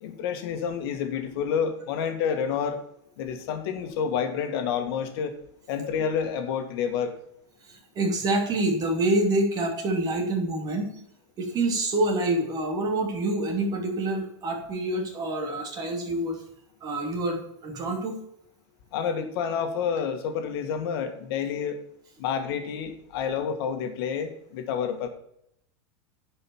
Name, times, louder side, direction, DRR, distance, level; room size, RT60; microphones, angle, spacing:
voice 1, 0.0-2.8 3.2-5.3 5.7-7.1 18.9-21.8 22.2-25.1, left 7 dB, 60° left, 7 dB, 2.0 m, -29 dB
voice 2, 7.7-10.9 11.4-16.4 16.8-18.2, right 2 dB, 25° right, 1 dB, 2.9 m, -27 dB
10.5 x 5.6 x 7.3 m, 0.74 s
supercardioid pair, 155°, 14 cm